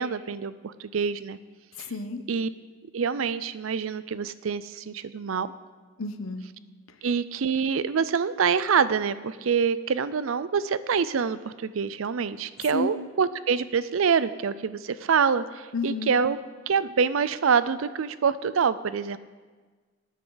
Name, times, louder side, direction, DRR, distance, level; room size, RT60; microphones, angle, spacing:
voice 1, 0.0-1.4 1.8-1.9 2.3-2.5 2.9-5.5 7.0-16.4 16.7-19.2, right 6 dB, 75° right, 15 dB, 0.5 m, -26 dB
voice 2, 1.8-2.2 6.0-6.4 12.7-12.9 15.7-16.1, left 3 dB, 90° left, 9 dB, 0.9 m, -31 dB
19.0 x 9.3 x 4.0 m, 1.4 s
head